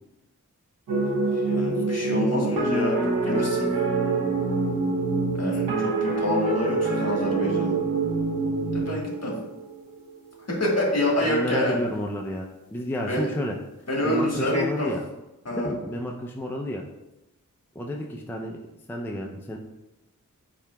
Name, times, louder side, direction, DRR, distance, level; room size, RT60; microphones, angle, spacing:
sound 1, 0.9-10.1, right 3 dB, 90° right, 0.9 m, -25 dB
voice 1, 1.3-3.7 5.3-7.8 8.7-9.3 10.5-11.7 13.1-13.3 13.9-14.9 15.4-15.7, left 1 dB, 50° left, -3 dB, 1.4 m, -27 dB
voice 2, 11.2-13.5 14.0-15.0 15.6-16.8 17.8-18.6 18.9-19.6, equal, 5° left, 0 dB, 0.4 m, -31 dB
8.2 x 2.8 x 2.2 m, 0.96 s
wide cardioid pair, 70°, 33 cm